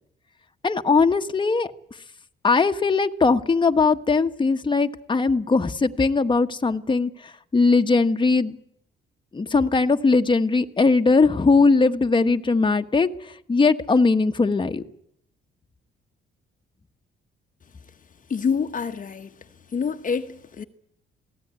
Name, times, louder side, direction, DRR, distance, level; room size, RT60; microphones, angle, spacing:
voice 1, 0.6-1.7 2.4-8.6 9.3-13.1 13.5-14.8, left 4 dB, 25° left, 1.4 m, -20 dB
voice 2, 18.3-19.3 19.7-20.6, left 6 dB, 40° left, 1.2 m, -27 dB
27.5 x 17.5 x 9.6 m
cardioid pair, 90°, 20 cm